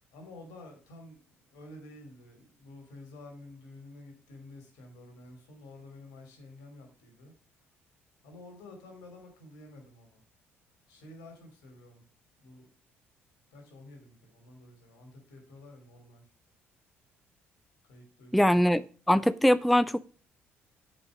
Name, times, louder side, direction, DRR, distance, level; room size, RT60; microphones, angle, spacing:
voice 1, 0.1-7.3 8.2-10.2 10.9-12.0 12.4-12.7 13.5-16.3 17.9-18.6, left 2 dB, 70° left, 2.8 m, -50 dB
voice 2, 18.3-20.0, equal, ahead, 0.4 m, -23 dB
7.1 x 5.6 x 5.0 m
figure-of-eight pair, 50°, 7 cm